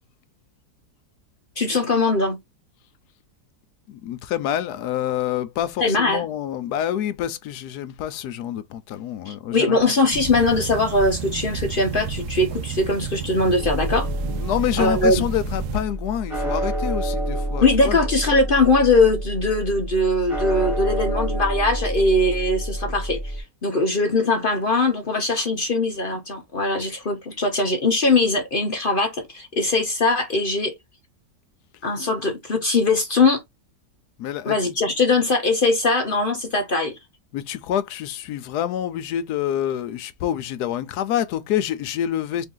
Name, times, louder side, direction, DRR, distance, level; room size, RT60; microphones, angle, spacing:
voice 1, 1.6-2.4 5.8-6.2 9.3-14.1 14.8-15.3 17.6-30.7 31.8-33.4 34.4-36.9, left 2 dB, 50° left, 0.6 m, -21 dB
voice 2, 3.9-9.8 14.2-18.0 34.2-34.6 37.3-42.5, left 11 dB, 75° left, 1.1 m, -27 dB
sound 1, 10.1-15.9, right 6 dB, 75° right, 1.1 m, -31 dB
sound 2, 13.6-23.4, right 1 dB, 20° right, 1.1 m, -28 dB
3.8 x 2.6 x 3.7 m
omnidirectional pair, 1.9 m